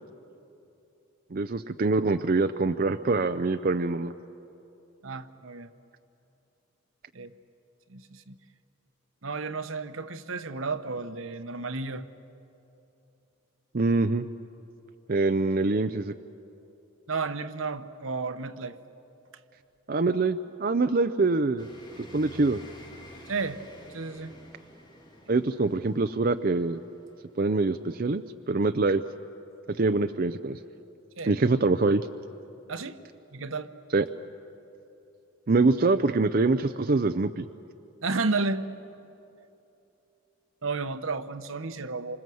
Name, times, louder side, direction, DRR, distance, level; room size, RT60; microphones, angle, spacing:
voice 1, 1.3-4.1 13.7-14.2 15.1-16.1 19.9-21.7 22.1-22.6 25.3-26.8 27.4-29.0 29.7-30.6 31.2-32.0 33.9-34.0 35.5-37.5, right 3 dB, 45° right, 9 dB, 0.5 m, -24 dB
voice 2, 5.0-5.7 7.1-7.3 7.9-8.4 9.2-12.1 17.1-18.8 23.3-23.6 23.9-24.3 31.2-31.3 32.7-33.0 33.3-33.7 38.0-38.7 40.6-42.2, right 3 dB, 75° right, 10 dB, 1.0 m, -32 dB
sound 1, 21.6-28.0, equal, 20° left, 2.8 m, -50 dB
28.0 x 26.0 x 7.8 m, 2.9 s
head